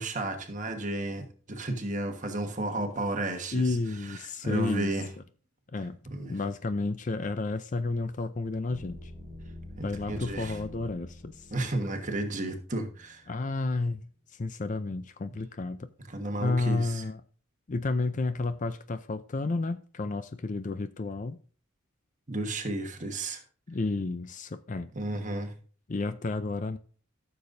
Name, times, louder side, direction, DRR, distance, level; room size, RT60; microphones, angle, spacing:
voice 1, 0.0-3.8 4.0-4.2 4.4-5.1 6.1-6.4 9.8-10.6 11.5-13.2 16.1-17.0 22.3-23.4 24.9-25.5, right 2 dB, 35° right, 1.4 m, -33 dB
voice 2, 3.5-4.9 5.7-6.0 6.3-9.1 9.8-11.5 13.3-14.0 14.3-15.9 16.4-17.2 17.7-21.4 23.7-24.9 25.9-26.8, left 3 dB, 35° left, 0.4 m, -31 dB
sound 1, 8.7-13.2, left 1 dB, 15° left, 3.1 m, -46 dB
14.5 x 6.9 x 2.6 m
head